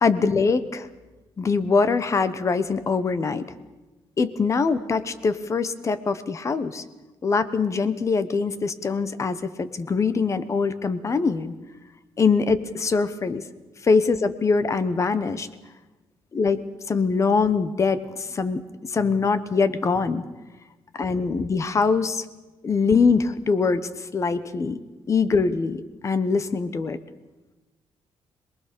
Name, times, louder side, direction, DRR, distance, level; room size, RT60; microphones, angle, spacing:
voice 1, 0.0-0.9 1.4-3.4 4.2-6.8 7.2-11.5 12.2-13.4 13.8-15.5 16.3-16.6 16.9-18.6 18.9-20.2 21.0-22.2 22.6-24.8 25.1-27.0, left 4 dB, 30° left, 13 dB, 1.1 m, -23 dB
26.5 x 20.0 x 6.8 m, 1.2 s
cardioid pair, 160°, 10 cm